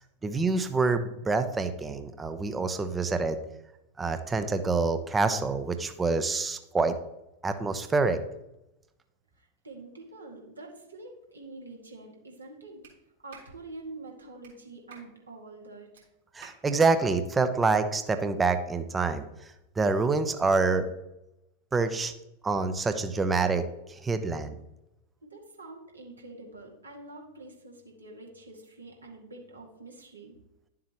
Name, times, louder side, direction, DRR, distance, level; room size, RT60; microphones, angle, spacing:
voice 1, 0.2-3.4 4.0-7.0 7.4-8.2 16.3-20.9 21.7-22.1 22.4-24.6, right 4 dB, 15° right, 10 dB, 0.7 m, -27 dB
voice 2, 9.4-12.9 13.2-16.1 25.2-30.4, right 2 dB, 80° right, -1 dB, 2.1 m, -46 dB
Clapping, 12.8-13.0 13.3-13.5 14.4-14.5 14.9-15.1 16.0-16.1 16.4-16.6, right 6 dB, 60° right, 3.2 m, -50 dB
11.0 x 7.4 x 3.0 m, 0.90 s
figure-of-eight pair, 90°, 0 cm